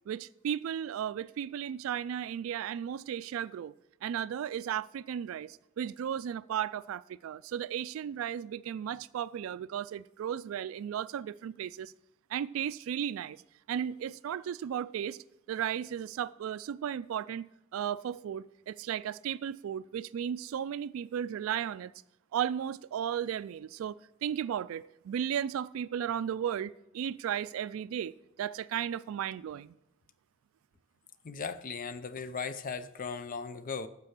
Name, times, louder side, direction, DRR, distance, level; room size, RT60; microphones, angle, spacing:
voice 1, 0.1-3.7 4.0-11.9 12.3-13.4 13.7-15.2 15.5-17.5 17.7-21.9 22.3-29.7, right 9 dB, 80° right, 0.3 m, -35 dB
voice 2, 31.2-33.9, left 5 dB, 45° left, 0.6 m, -37 dB
9.7 x 6.8 x 6.5 m
head